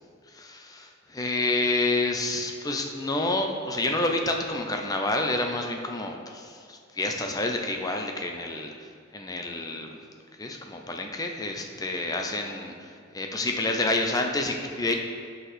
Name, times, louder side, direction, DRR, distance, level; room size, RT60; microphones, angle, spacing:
voice 1, 0.3-9.9 10.4-15.0, left 2 dB, 20° left, 3 dB, 0.6 m, -29 dB
8.0 x 4.0 x 6.2 m, 2.2 s
head